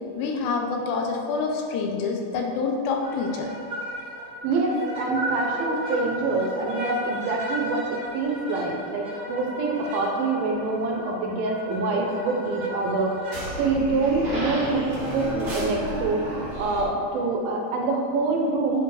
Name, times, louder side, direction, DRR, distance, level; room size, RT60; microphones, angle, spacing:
voice 1, 0.2-3.5, left 4 dB, 90° left, 1 dB, 2.9 m, -27 dB
sound 1, 3.0-16.8, equal, 40° right, 1.3 m, -34 dB
voice 2, 4.1-18.8, right 3 dB, 75° right, 0 dB, 2.3 m, -26 dB
7.9 x 4.9 x 4.7 m, 2.6 s
omnidirectional pair, 4.6 m